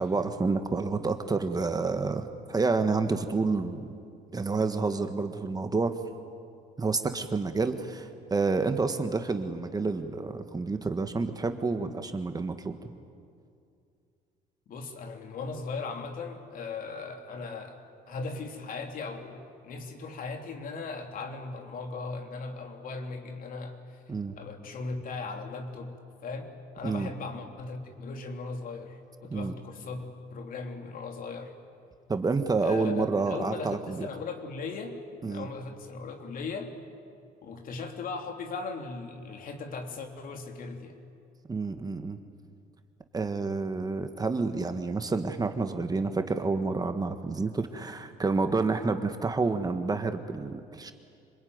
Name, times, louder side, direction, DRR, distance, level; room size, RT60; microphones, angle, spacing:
voice 1, 0.0-3.9 4.3-6.0 6.8-12.7 24.1-24.4 26.8-27.1 29.3-29.5 32.1-34.1 35.2-35.5 41.5-42.2 43.1-50.9, right 4 dB, 20° right, 7 dB, 1.6 m, -29 dB
voice 2, 14.7-17.8 18.1-24.0 24.3-31.5 32.6-36.7 37.4-41.0, left 4 dB, 55° left, 4 dB, 3.1 m, -38 dB
26.0 x 21.0 x 9.6 m, 2.4 s
cardioid pair, 110°, 17 cm